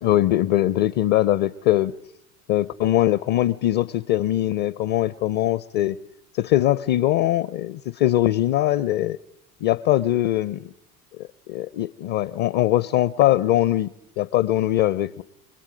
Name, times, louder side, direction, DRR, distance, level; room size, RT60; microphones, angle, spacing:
voice 1, 0.0-1.9 2.5-6.0 6.4-9.2 9.6-10.7 11.1-13.9 14.2-15.2, left 14 dB, 50° left, 19 dB, 0.8 m, -21 dB
28.5 x 22.0 x 5.1 m, 0.82 s
figure-of-eight pair, 70°, 45 cm